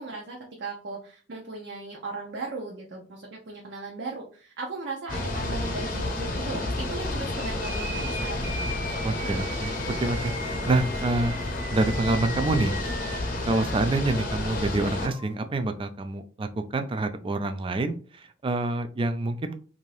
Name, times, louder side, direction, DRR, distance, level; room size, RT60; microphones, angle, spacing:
voice 1, 0.0-8.5 8.9-9.3, right 3 dB, 65° right, -1 dB, 0.6 m, -37 dB
sound 1, 5.1-15.1, left 2 dB, 45° left, 0.7 m, -30 dB
sound 2, 7.3-15.3, right 1 dB, 10° right, 0.7 m, -40 dB
voice 2, 9.0-11.3 11.7-12.7 13.5-18.0 18.4-19.6, right 2 dB, 25° right, 8 dB, 0.3 m, -27 dB
2.7 x 2.6 x 3.2 m, 0.42 s
head